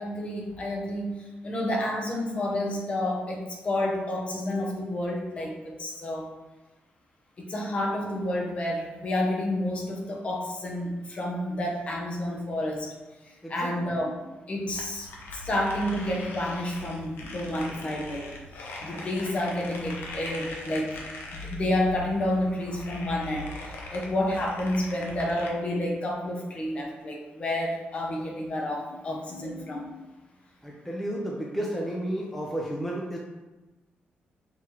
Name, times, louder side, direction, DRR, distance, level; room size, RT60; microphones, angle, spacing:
voice 1, 0.0-6.3 7.4-12.9 13.2-14.1 14.5-18.2 18.6-21.0 21.3-30.0, left 1 dB, 35° left, -1 dB, 0.8 m, -30 dB
voice 2, 13.4-13.8 30.6-33.2, right 1 dB, 5° left, -3 dB, 0.5 m, -32 dB
sound 1, 14.7-25.5, left 1 dB, 85° left, 0.8 m, -40 dB
5.7 x 3.1 x 2.9 m, 1.1 s
wide cardioid pair, 165°, 4 cm